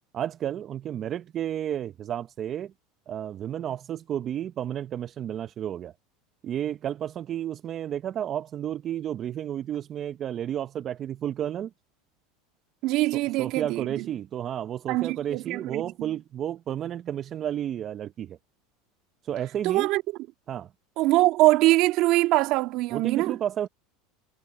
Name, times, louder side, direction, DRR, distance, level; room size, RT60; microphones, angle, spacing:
voice 1, 0.1-2.7 3.1-5.9 6.4-11.7 13.4-18.4 19.2-19.9 20.5-20.7 22.9-23.7, right 10 dB, 40° right, 0.9 m, -32 dB
voice 2, 12.8-14.0 14.9-16.1 19.6-20.0 21.0-23.4, right 18 dB, 60° right, 2.1 m, -23 dB
supercardioid pair, 105°, 0 cm